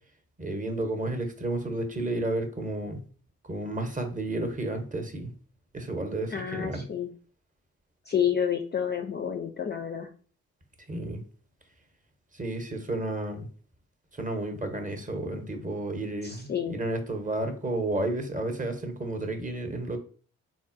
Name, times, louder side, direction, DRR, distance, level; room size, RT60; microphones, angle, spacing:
voice 1, 0.4-3.0 3.5-5.3 5.7-6.8 10.9-11.2 12.3-13.5 14.1-20.0, right 2 dB, 20° right, 6 dB, 0.8 m, -32 dB
voice 2, 6.3-7.1 8.1-10.1 16.2-16.8, left 8 dB, 25° left, 3 dB, 0.4 m, -29 dB
3.8 x 2.1 x 2.5 m, 0.42 s
hypercardioid pair, 40°, 39 cm